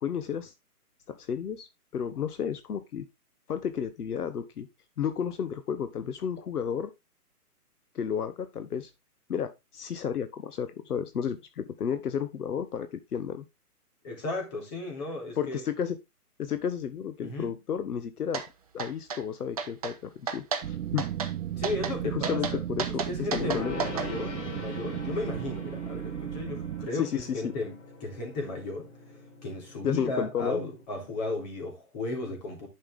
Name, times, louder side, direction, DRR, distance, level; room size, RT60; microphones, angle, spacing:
voice 1, 0.0-0.5 1.1-1.7 1.9-3.1 3.5-4.7 5.0-6.9 7.9-8.9 9.3-13.4 15.4-16.0 16.4-18.4 18.7-21.1 22.0-23.8 26.9-27.5 29.8-30.6, left 8 dB, 75° left, 1.1 m, -32 dB
voice 2, 14.0-15.6 17.2-17.6 21.6-22.6 22.9-32.7, left 2 dB, 30° left, 3.3 m, -35 dB
sound 1, 18.3-18.5 18.8-19.2 19.6-19.9 20.3-20.7 21.0-21.3 21.6-22.0 22.2-24.1, right 6 dB, 25° right, 0.8 m, -32 dB
sound 2, 20.6-26.9, right 11 dB, 90° right, 0.9 m, -35 dB
Gong, 23.4-30.8, left 4 dB, 45° left, 2.7 m, -42 dB
10.5 x 5.6 x 3.6 m
hypercardioid pair, 165°, 46 cm